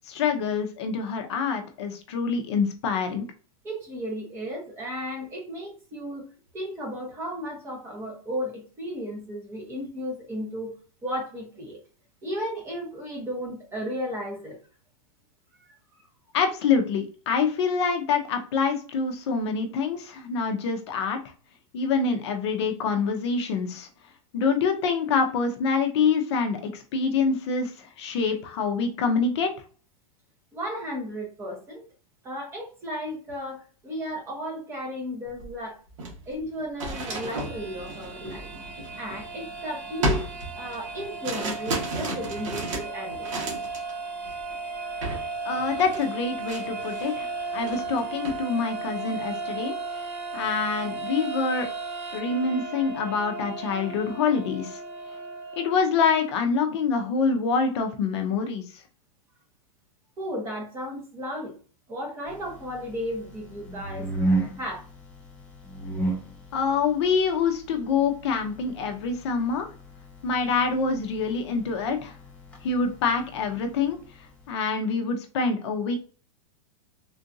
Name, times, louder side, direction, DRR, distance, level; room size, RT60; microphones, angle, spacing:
voice 1, 0.0-3.2 16.3-21.2 21.7-23.9 24.3-29.5 45.4-51.7 52.1-54.8 55.6-58.8 66.5-69.7 70.2-72.1 72.6-74.0 74.5-76.0, left 5 dB, 50° left, 5 dB, 0.6 m, -26 dB
voice 2, 3.6-6.3 6.5-10.7 11.0-11.8 12.2-14.6 30.5-31.8 32.2-35.8 36.3-38.5 39.0-40.2 40.6-43.3 60.2-61.5 61.9-64.1 64.6-64.8, equal, 15° right, 0 dB, 0.9 m, -34 dB
sound 1, 35.4-35.5 35.9-39.5 40.0-43.9 44.2-44.5 45.0-45.3 45.5-47.2 47.5-48.4, right 2 dB, 60° right, 1.3 m, -33 dB
sound 2, 36.9-55.8, right 3 dB, 45° right, 0.8 m, -35 dB
sound 3, 62.3-74.5, right 2 dB, 5° left, 0.4 m, -35 dB
3.7 x 2.4 x 2.6 m, 0.39 s
supercardioid pair, 170°, 18 cm